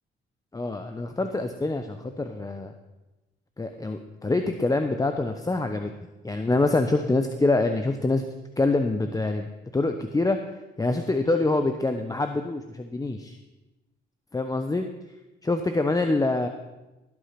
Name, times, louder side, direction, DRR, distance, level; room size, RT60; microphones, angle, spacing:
voice 1, 0.5-2.7 3.6-5.9 6.2-8.2 8.6-10.4 10.8-13.4 14.3-14.8 15.4-16.5, left 2 dB, 20° left, 6 dB, 0.9 m, -25 dB
17.5 x 8.4 x 5.9 m, 1.1 s
cardioid pair, 90°, 20 cm